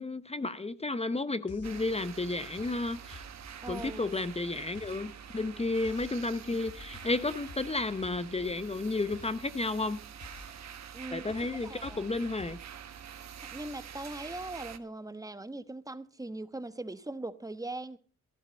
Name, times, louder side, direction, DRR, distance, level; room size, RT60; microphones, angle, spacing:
voice 1, 0.0-3.2 3.7-10.0 11.1-12.6, left 2 dB, 20° left, 0.8 m, -32 dB
sound 1, 1.5-13.2, left 4 dB, 55° left, 3.8 m, -53 dB
sound 2, 1.6-14.8, right 8 dB, 65° right, 1.4 m, -47 dB
voice 2, 3.6-4.2 10.9-12.2 13.4-18.0, right 2 dB, 10° right, 1.2 m, -41 dB
14.5 x 12.0 x 5.3 m
cardioid pair, 65°, 29 cm